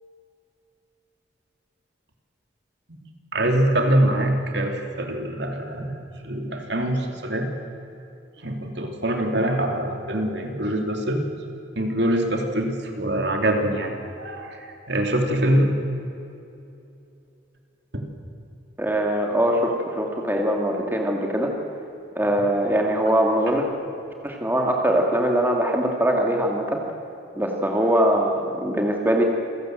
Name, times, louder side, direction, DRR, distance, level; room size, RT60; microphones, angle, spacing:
voice 1, 3.3-6.0 6.2-7.5 8.4-11.3 11.7-15.7 17.9-18.0, right 1 dB, 60° right, 3 dB, 2.9 m, -24 dB
voice 2, 18.8-21.5 22.2-23.7 24.2-26.8 27.3-29.2, right 1 dB, 10° right, 1 dB, 2.4 m, -22 dB
27.5 x 17.5 x 7.8 m, 2.8 s
head